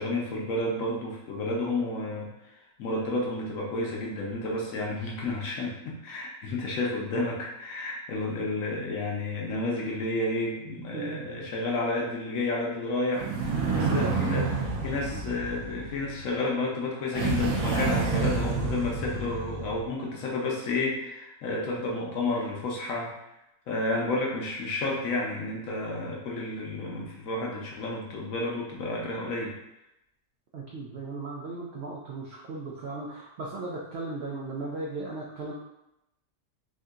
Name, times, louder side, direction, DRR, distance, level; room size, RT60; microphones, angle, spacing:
voice 1, 0.0-14.5 14.8-23.1 23.7-29.6, left 2 dB, 70° left, -2 dB, 1.0 m, -31 dB
voice 2, 10.9-11.5 13.8-14.4 15.1-15.2 30.5-35.5, right 3 dB, 85° right, -3 dB, 0.5 m, -36 dB
sound 1, 13.1-16.2 17.1-19.8, right 4 dB, 70° right, 0.9 m, -29 dB
3.6 x 2.7 x 2.4 m, 0.88 s
omnidirectional pair, 1.6 m